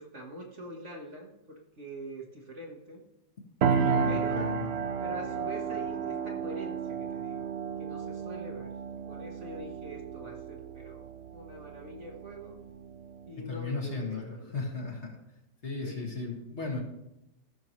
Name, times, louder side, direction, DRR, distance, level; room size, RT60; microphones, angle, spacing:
voice 1, 0.0-3.0 4.1-4.5 5.0-11.1 11.3-12.5 13.3-14.5 15.8-16.1, right 1 dB, 45° right, -1 dB, 1.4 m, -44 dB
sound 1, 3.6-13.3, right 6 dB, 75° right, 0.5 m, -33 dB
voice 2, 3.7-4.7 13.5-15.1 15.6-16.8, left 3 dB, 40° left, -1 dB, 2.0 m, -35 dB
15.0 x 6.9 x 3.1 m, 0.89 s
omnidirectional pair, 2.0 m